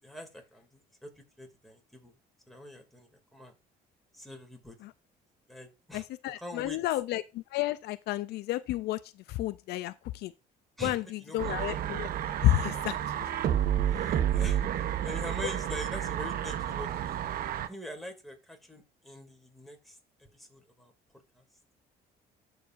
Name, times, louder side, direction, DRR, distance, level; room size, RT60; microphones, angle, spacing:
voice 1, 0.0-2.2 2.5-3.5 4.1-4.8 5.5-6.1 6.4-6.8 10.8-11.7 12.7-12.9 13.8-17.2 17.7-20.9 21.3-21.4, equal, ahead, 2.4 m, -44 dB
voice 2, 5.9-9.0 9.3-10.3 10.8-12.1 12.4-13.3, left 15 dB, 75° left, 0.4 m, -31 dB
sound 1, 11.4-17.7, right 10 dB, 60° right, 0.8 m, -30 dB
14.0 x 4.8 x 2.5 m
cardioid pair, 110°, 17 cm